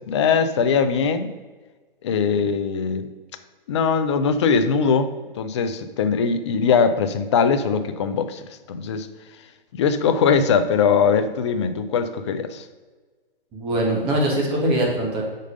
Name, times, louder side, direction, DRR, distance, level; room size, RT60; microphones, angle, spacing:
voice 1, 0.1-1.3 2.0-3.1 3.7-9.1 9.7-12.6, left 6 dB, 30° left, 10 dB, 0.5 m, -21 dB
voice 2, 13.5-15.2, right 1 dB, 20° right, -1 dB, 1.7 m, -22 dB
6.3 x 5.3 x 5.2 m, 1.4 s
hypercardioid pair, 145°, 29 cm